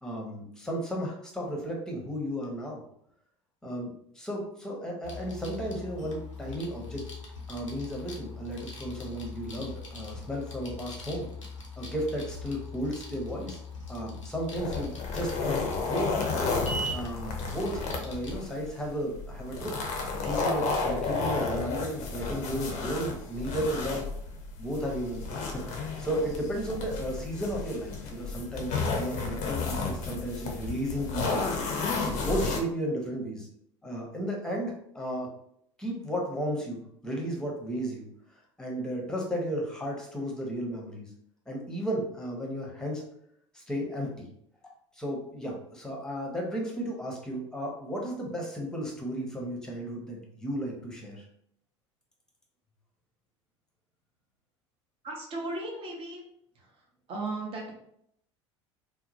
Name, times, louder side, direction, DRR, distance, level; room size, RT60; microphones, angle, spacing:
voice 1, 0.0-2.8 3.6-3.9 4.1-7.0 7.5-11.3 11.8-13.6 13.9-16.3 16.9-19.7 20.2-24.1 24.6-31.5 32.0-33.5 33.8-35.3 35.8-38.1 38.6-41.1 41.5-43.0 43.5-44.2 44.9-51.2, equal, 5° left, -1 dB, 0.8 m, -34 dB
sound 1, 5.0-18.4, left 2 dB, 85° left, 0.6 m, -41 dB
sound 2, 14.6-32.6, left 4 dB, 50° left, 0.6 m, -32 dB
voice 2, 55.0-56.2 56.5-57.7, right 2 dB, 35° right, -1 dB, 0.8 m, -36 dB
2.8 x 2.1 x 2.7 m, 0.71 s
figure-of-eight pair, 70°, 16 cm